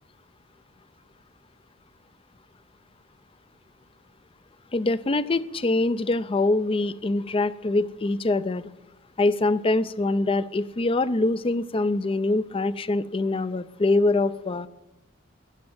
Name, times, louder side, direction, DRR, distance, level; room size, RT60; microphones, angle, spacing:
voice 1, 4.7-8.6 9.2-14.7, left 2 dB, 30° left, 15 dB, 0.5 m, -24 dB
14.0 x 10.5 x 8.8 m, 1.0 s
head